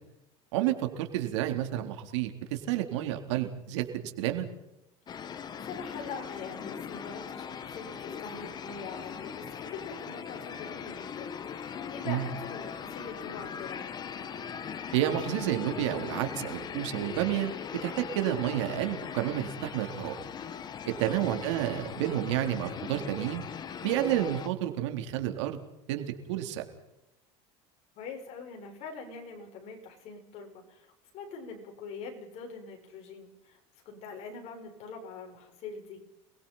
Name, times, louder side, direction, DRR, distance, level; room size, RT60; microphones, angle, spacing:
voice 1, 0.5-4.5 12.1-12.3 14.9-17.5 17.8-20.1 20.9-23.4 23.8-25.6 25.9-26.7, right 12 dB, 85° right, 5 dB, 3.8 m, -30 dB
voice 2, 5.1-13.8 21.0-21.4 28.0-33.6 33.9-36.0, left 5 dB, 50° left, 2 dB, 7.1 m, -43 dB
sound 1, 5.1-24.5, left 7 dB, 30° left, 1.7 m, -40 dB
29.0 x 21.5 x 5.8 m, 0.91 s
supercardioid pair, 140°, 15 cm